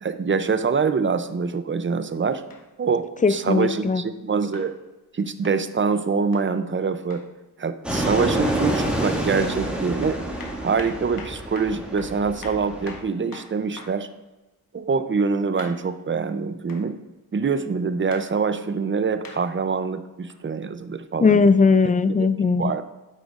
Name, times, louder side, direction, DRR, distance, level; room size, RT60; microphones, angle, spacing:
voice 1, 0.0-2.4 2.8-4.7 5.1-7.2 7.6-10.2 10.6-14.1 14.7-17.0 17.3-21.4 22.2-22.3 22.6-22.8, right 5 dB, 35° right, 11 dB, 0.5 m, -25 dB
sound 1, 2.5-2.7 3.6-3.8 4.5-4.7 5.4-5.6 6.3-6.5 7.1-7.3 7.9-8.2 8.7-8.9 9.4-9.6 10.0-14.0 15.6-15.8 16.7-16.9 18.1-18.3 19.2-19.4 20.3-20.4, left 4 dB, 65° left, 1.1 m, -43 dB
voice 2, 3.2-4.0 21.2-22.7, left 4 dB, 25° left, 13 dB, 0.3 m, -18 dB
Fixed-wing aircraft airplane, 7.8-13.0, right 1 dB, 5° right, 1.8 m, -28 dB
9.2 x 8.1 x 2.5 m, 1.1 s
wide cardioid pair, 75°, 37 cm